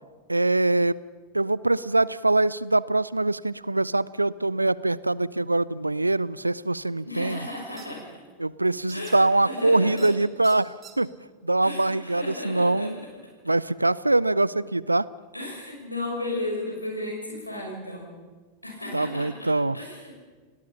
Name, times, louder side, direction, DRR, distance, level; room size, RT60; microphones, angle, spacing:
voice 1, 0.3-1.0 1.3-7.4 8.4-11.1 11.4-13.0 13.5-15.1 18.9-19.8, right 2 dB, 85° right, 21 dB, 0.5 m, -23 dB
voice 2, 7.0-8.0 8.9-10.1 11.6-13.1 15.3-18.1 18.6-19.5 19.7-20.2, left 2 dB, 85° left, 0 dB, 6.0 m, -34 dB
sound 1, 7.8-7.9 8.9-9.1 10.0-10.1 10.4-10.9, right 8 dB, 25° right, 3.9 m, -45 dB
30.0 x 17.5 x 5.8 m, 1.4 s
figure-of-eight pair, 90°, 0 cm